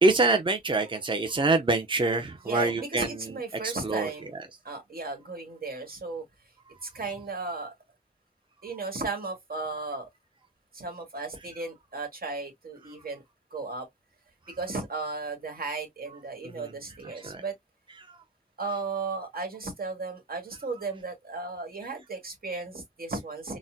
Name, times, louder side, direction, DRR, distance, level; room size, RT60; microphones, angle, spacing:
voice 1, 0.0-3.1 3.6-4.1 14.5-14.6 16.5-16.7 17.0-17.4 18.1-18.2, right 3 dB, 35° right, 0.6 m, -25 dB
voice 2, 2.4-4.3 4.6-6.2 6.8-7.7 8.6-10.1 10.7-13.2 13.5-13.9 14.6-17.5 18.6-23.6, right 3 dB, 85° right, 1.7 m, -35 dB
4.0 x 2.1 x 2.6 m
wide cardioid pair, 70°, 15 cm